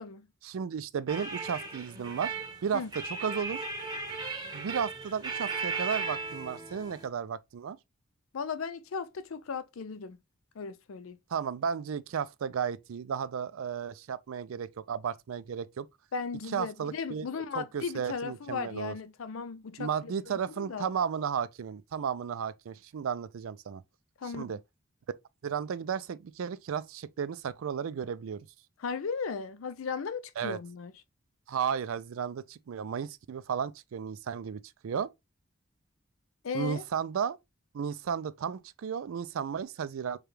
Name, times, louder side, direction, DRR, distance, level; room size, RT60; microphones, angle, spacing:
voice 1, 0.4-2.3 2.6-2.8 3.1-3.6 4.5-7.8 11.3-15.9 16.5-17.3 17.5-18.9 19.8-23.8 24.2-24.6 25.4-28.5 30.4-30.6 31.5-35.1 36.5-37.4 37.7-40.2, right 7 dB, 85° right, 0.4 m, -34 dB
sound 1, 1.1-7.1, right 4 dB, 20° right, 0.8 m, -36 dB
voice 2, 8.3-10.2 10.6-11.2 16.1-20.9 24.2-24.6 28.8-30.9 36.4-36.8, left 5 dB, 85° left, 0.5 m, -36 dB
4.8 x 2.3 x 3.1 m
head